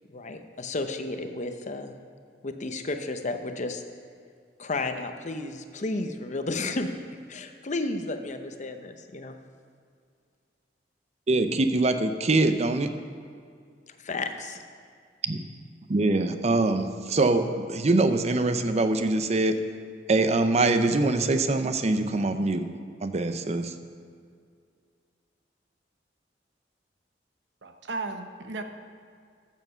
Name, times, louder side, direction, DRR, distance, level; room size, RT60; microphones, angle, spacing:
voice 1, 0.1-2.0 2.4-3.8 4.6-6.9 7.3-9.4 14.0-14.6, left 2 dB, 45° left, 7 dB, 0.7 m, -32 dB
voice 2, 11.3-12.9 15.2-15.4 15.9-19.5 20.1-22.6 23.0-23.7, right 2 dB, 40° right, 9 dB, 0.6 m, -23 dB
voice 3, 27.6-28.6, right 3 dB, 85° right, 6 dB, 0.9 m, -35 dB
13.5 x 7.3 x 5.6 m, 2.2 s
head